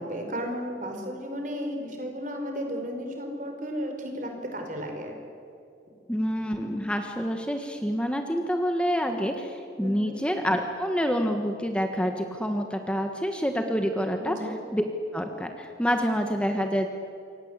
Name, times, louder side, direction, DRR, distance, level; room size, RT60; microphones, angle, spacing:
voice 1, 0.0-5.2 9.8-10.1 14.2-14.6, equal, 45° right, 3 dB, 5.1 m, -34 dB
voice 2, 6.1-14.8 15.1-16.9, equal, 5° left, 4 dB, 1.4 m, -27 dB
28.0 x 24.5 x 8.2 m, 2.7 s
head